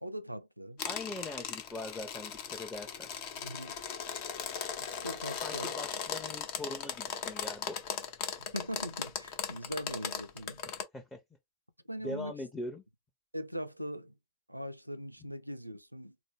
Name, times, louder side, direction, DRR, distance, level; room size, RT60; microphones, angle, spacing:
voice 1, 0.0-0.8 3.4-3.8 4.8-5.7 8.4-10.6 11.9-12.3 13.3-14.1 14.5-16.2, equal, 90° right, 0.3 m, -41 dB
sound 1, 0.8-10.8, left 7 dB, 45° left, 0.7 m, -38 dB
voice 2, 0.8-3.1 5.4-7.8 10.9-11.2 12.0-12.8, left 2 dB, 10° left, 0.7 m, -41 dB
3.9 x 2.0 x 3.4 m
figure-of-eight pair, 90°, 0 cm